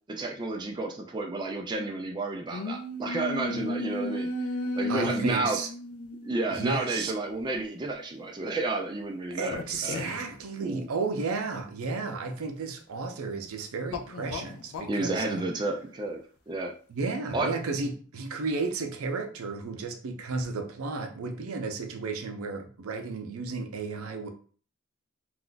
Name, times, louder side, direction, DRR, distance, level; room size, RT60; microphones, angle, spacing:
voice 1, 0.1-4.3 4.8-5.6 6.2-10.1 10.6-10.9 14.9-16.2 16.5-16.7 17.3-17.5, right 2 dB, 20° right, 0.3 m, -31 dB
sound 1, 2.5-6.5 7.4-7.6 9.5-10.3 13.9-15.0, left 1 dB, 85° left, 0.4 m, -34 dB
voice 2, 4.9-5.7 6.5-7.1 9.3-15.4 16.9-24.3, right 4 dB, 80° right, 0.5 m, -33 dB
2.4 x 2.2 x 3.7 m
head